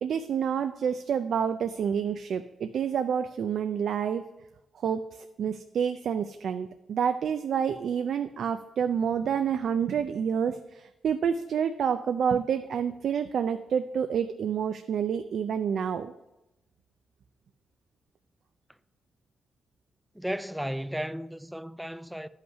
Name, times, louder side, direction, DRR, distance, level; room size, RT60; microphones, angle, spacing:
voice 1, 0.0-4.2 4.8-16.1, right 7 dB, 70° right, 0.4 m, -28 dB
voice 2, 20.1-22.3, equal, 5° right, 0.3 m, -34 dB
11.0 x 5.7 x 5.5 m
cardioid pair, 105°, 0 cm